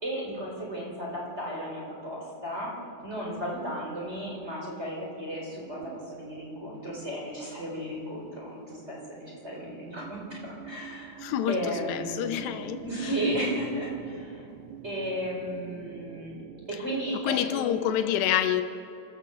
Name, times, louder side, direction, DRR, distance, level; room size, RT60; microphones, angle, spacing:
voice 1, 0.0-2.7 3.0-11.2 11.5-14.5 14.8-16.4 16.7-18.0, equal, 15° right, -3 dB, 3.9 m, -34 dB
sound 1, 5.5-16.8, right 10 dB, 90° right, 3.1 m, -47 dB
voice 2, 11.2-13.2 17.1-18.6, left 11 dB, 85° left, 8 dB, 2.9 m, -28 dB
27.5 x 13.5 x 7.8 m, 2.7 s
omnidirectional pair, 4.8 m